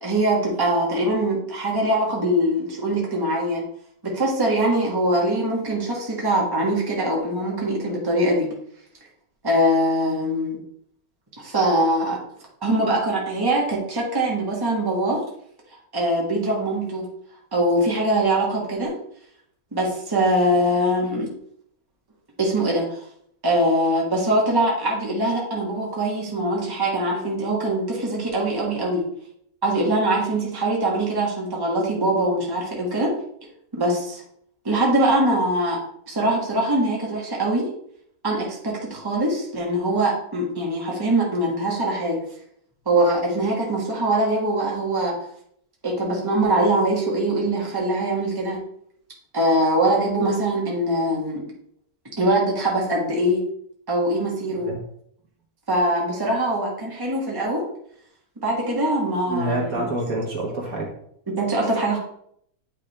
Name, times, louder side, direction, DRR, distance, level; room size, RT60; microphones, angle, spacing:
voice 1, 0.0-3.6 4.0-8.5 9.4-10.6 11.4-12.2 12.6-15.2 15.9-17.1 17.5-18.9 19.7-21.3 22.4-23.0 23.4-29.0 29.6-33.1 33.7-34.2 34.6-35.8 36.1-37.7 38.2-42.2 42.8-45.2 45.8-48.6 49.3-51.4 52.2-53.4 53.9-54.7 55.7-57.6 58.4-59.8 61.3-62.0, right 1 dB, 15° right, -2 dB, 1.3 m, -22 dB
voice 2, 54.5-54.8 59.3-60.9 61.7-61.8, right 2 dB, 70° right, -1 dB, 1.8 m, -27 dB
9.1 x 3.6 x 3.3 m, 0.68 s
omnidirectional pair, 1.6 m